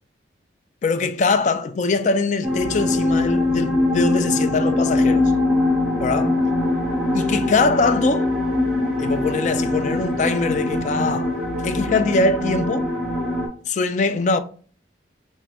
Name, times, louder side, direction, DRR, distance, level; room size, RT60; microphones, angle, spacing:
voice 1, 0.8-5.3 6.0-6.4 7.1-8.3 9.0-11.4 11.6-12.9 13.7-14.4, left 3 dB, 40° left, 0.3 m, -22 dB
sound 1, 2.4-13.5, left 2 dB, ahead, 1.5 m, -22 dB
5.8 x 2.2 x 3.4 m
head